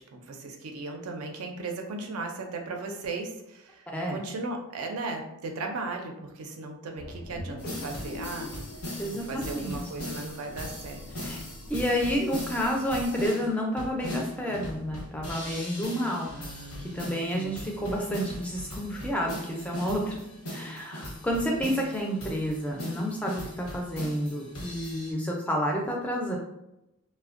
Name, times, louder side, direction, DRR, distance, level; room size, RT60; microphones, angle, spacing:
voice 1, 0.0-8.5 9.1-11.4 16.3-17.9, right 3 dB, 80° right, 3 dB, 0.4 m, -37 dB
voice 2, 3.9-4.2 9.0-9.8 11.1-11.4 11.7-16.3 16.8-26.4, equal, 5° left, -1 dB, 0.3 m, -30 dB
sound 1, 7.0-13.1, left 1 dB, 60° left, 0.5 m, -43 dB
sound 2, 7.6-25.1, left 1 dB, 85° left, 0.8 m, -39 dB
2.5 x 2.1 x 2.4 m, 0.86 s
head